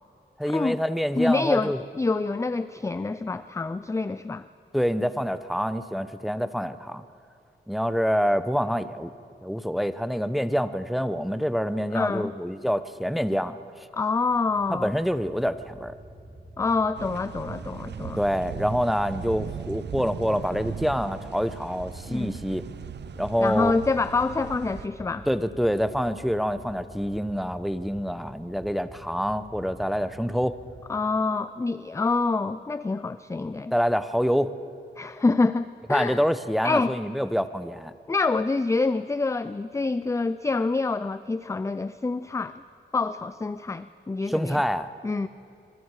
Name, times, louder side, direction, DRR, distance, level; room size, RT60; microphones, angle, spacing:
voice 1, 0.4-1.8 4.7-7.0 7.7-9.1 9.4-13.9 14.7-15.9 18.2-22.6 23.2-23.8 25.3-30.6 33.7-34.5 35.9-37.9 44.3-44.9, equal, ahead, 12 dB, 0.8 m, -26 dB
voice 2, 1.1-4.4 11.9-12.3 13.9-15.0 16.6-18.2 22.1-22.4 23.4-25.3 30.9-33.7 35.0-36.2 36.6-36.9 38.1-42.6 42.9-44.6 45.0-45.3, left 3 dB, 15° left, 14 dB, 0.4 m, -26 dB
sound 1, 14.3-30.8, right 1 dB, 15° right, 3.6 m, -46 dB
sound 2, 16.9-24.9, right 8 dB, 65° right, 0.6 m, -38 dB
25.5 x 23.0 x 4.9 m, 2.5 s
wide cardioid pair, 100°, 19 cm